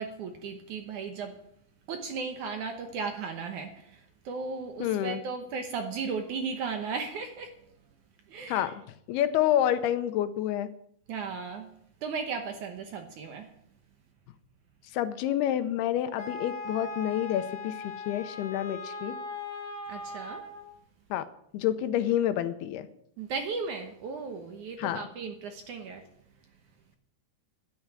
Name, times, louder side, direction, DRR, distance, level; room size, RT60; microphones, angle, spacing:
voice 1, 0.0-1.4 1.9-4.0 4.3-7.5 8.3-8.7 11.1-11.7 12.0-13.5 19.9-20.4 23.2-26.0, right 5 dB, 65° right, 5 dB, 2.1 m, -36 dB
voice 2, 4.8-5.2 8.5-8.8 9.1-10.7 14.9-19.2 21.1-21.3 21.5-22.9 24.8-25.0, left 11 dB, 90° left, 11 dB, 2.7 m, -28 dB
Wind instrument woodwind instrument, 16.2-20.7, left 2 dB, 30° left, 2.0 m, -39 dB
12.0 x 11.0 x 6.1 m, 0.70 s
omnidirectional pair, 4.6 m